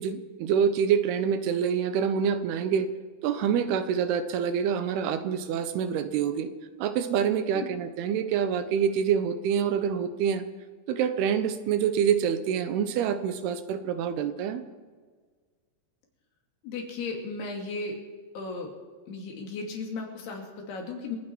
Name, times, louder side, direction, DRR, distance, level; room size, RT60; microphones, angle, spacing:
voice 1, 0.0-2.9 3.2-6.5 6.8-10.5 10.9-14.6, right 7 dB, 80° right, 10 dB, 3.0 m, -26 dB
voice 2, 16.6-18.0 18.3-18.7 19.1-21.2, left 3 dB, 80° left, 1 dB, 4.5 m, -35 dB
28.5 x 9.6 x 4.6 m, 1.6 s
omnidirectional pair, 4.5 m